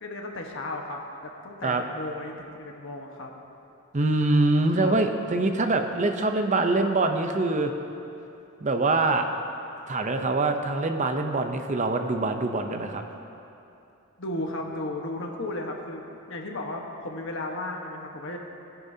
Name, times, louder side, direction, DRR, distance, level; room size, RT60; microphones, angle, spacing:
voice 1, 0.0-3.3 4.7-5.0 14.2-18.4, left 2 dB, 60° left, 1 dB, 1.2 m, -35 dB
voice 2, 3.9-7.7 8.6-9.3 9.9-13.0, right 2 dB, 35° right, 6 dB, 0.6 m, -24 dB
19.0 x 10.5 x 2.8 m, 2.8 s
head